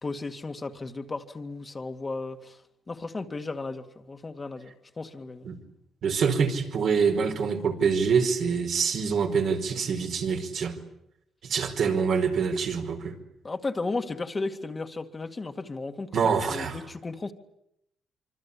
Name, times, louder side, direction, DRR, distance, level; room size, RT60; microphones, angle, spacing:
voice 1, 0.0-2.6 2.9-5.5 13.4-16.2 16.5-17.3, left 3 dB, 25° left, 2.1 m, -34 dB
voice 2, 6.0-10.8 11.4-13.1 16.1-16.8, right 6 dB, 65° right, 4.8 m, -25 dB
25.5 x 25.0 x 8.6 m
cardioid pair, 90°, 0 cm